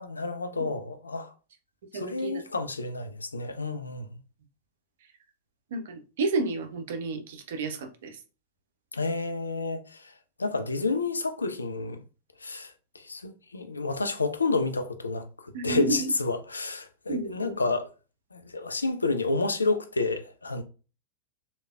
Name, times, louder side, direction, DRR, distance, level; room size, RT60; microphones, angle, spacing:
voice 1, 0.0-1.3 1.9-4.2 8.9-10.1 10.4-12.0 12.4-17.9 18.3-20.6, left 3 dB, 75° left, 0.3 m, -30 dB
voice 2, 1.9-2.4 5.7-8.2 15.5-16.1 17.1-17.6, right 3 dB, 55° right, 0.5 m, -31 dB
3.2 x 2.1 x 2.2 m
figure-of-eight pair, 90°, 0 cm